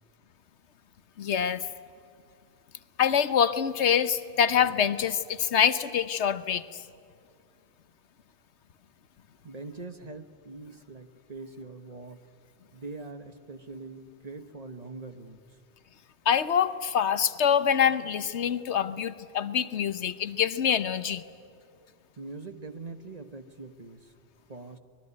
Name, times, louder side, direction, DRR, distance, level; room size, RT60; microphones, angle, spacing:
voice 1, 1.2-1.7 3.0-6.8 16.3-21.2, left 8 dB, 80° left, 13 dB, 1.2 m, -25 dB
voice 2, 9.4-12.2 12.7-15.4 22.2-24.1 24.5-24.8, right 3 dB, 35° right, 8 dB, 1.3 m, -43 dB
24.5 x 20.5 x 9.7 m, 2.2 s
omnidirectional pair, 1.1 m